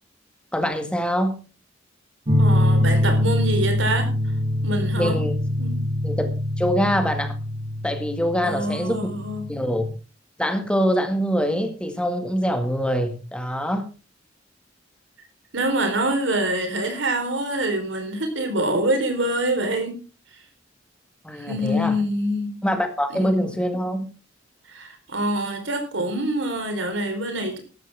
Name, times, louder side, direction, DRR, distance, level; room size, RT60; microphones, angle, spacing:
voice 1, 0.5-1.3 5.0-5.3 6.0-7.4 7.8-9.1 9.5-9.9 10.4-13.9 21.2-22.0 22.6-24.1, equal, 5° left, 6 dB, 2.0 m, -24 dB
sound 1, 2.3-9.9, left 1 dB, 35° right, 3.0 m, -23 dB
voice 2, 2.4-4.1 4.6-5.2 5.6-5.8 8.4-9.5 15.5-20.0 21.4-22.5 23.1-23.5 24.7-27.6, right 1 dB, 90° right, 6 dB, 4.1 m, -25 dB
13.5 x 12.5 x 3.6 m, 0.32 s
head